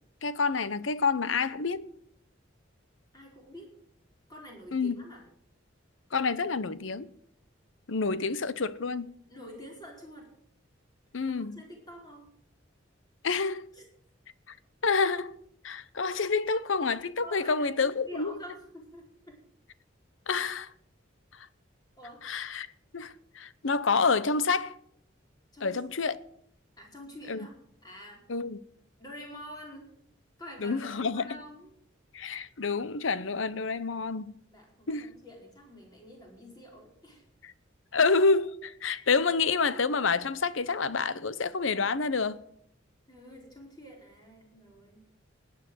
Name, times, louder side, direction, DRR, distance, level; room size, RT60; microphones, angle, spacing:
voice 1, 0.2-1.9 4.7-5.0 6.1-7.1 7.9-9.1 11.1-11.6 13.2-13.7 14.5-14.6 14.8-15.3 15.6-18.4 20.3-20.7 21.4-21.5 22.2-22.7 22.9-24.8 25.6-26.2 27.3-27.5 28.3-28.6 30.6-31.4 32.1-34.3 34.9-35.1 37.9-42.4, left 4 dB, 80° left, 0.8 m, -28 dB
voice 2, 3.1-3.7 4.3-5.3 9.3-10.3 11.2-12.3 13.7-13.8 17.2-19.3 22.0-22.2 25.5-25.8 26.8-27.5 27.8-28.2 29.0-29.9 30.4-31.7 34.5-37.2 43.1-45.0, equal, 20° left, 4.9 m, -47 dB
18.0 x 9.7 x 6.4 m
head